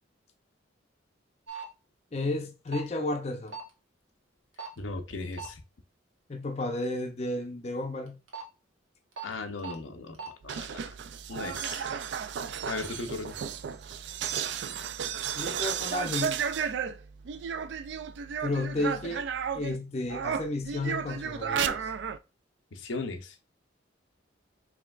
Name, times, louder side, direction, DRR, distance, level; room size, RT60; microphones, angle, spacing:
sound 1, 1.5-1.7 2.7-2.9 3.5-3.7 4.6-4.8 5.3-5.5 8.1-8.4 9.2-9.3 9.6-9.7 10.1-10.3, right 7 dB, 90° right, 1.2 m, -38 dB
voice 1, 2.1-3.6 6.3-8.2 15.3-16.4 18.4-19.3 19.5-21.9, left 2 dB, 35° left, 0.5 m, -32 dB
voice 2, 4.8-5.6 9.2-10.8 11.3-11.9 12.7-13.3 22.7-23.3, left 3 dB, 90° left, 0.7 m, -37 dB
sound 2, 10.4-19.8 20.1-22.2, right 7 dB, 65° right, 0.3 m, -33 dB
4.9 x 3.2 x 2.4 m
head